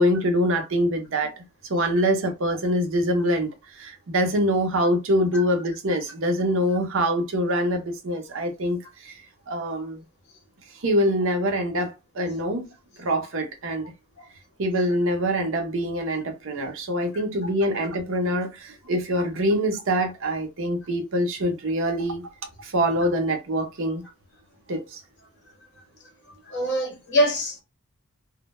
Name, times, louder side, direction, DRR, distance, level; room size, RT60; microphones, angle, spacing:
voice 1, 0.0-1.3 1.7-9.1 9.5-10.0 10.8-12.7 13.0-13.9 14.6-22.3 22.6-24.0 24.7-25.0, equal, 60° right, 0.6 m, -24 dB
voice 2, 26.5-27.6, equal, 55° left, 0.8 m, -24 dB
2.1 x 2.0 x 2.9 m
head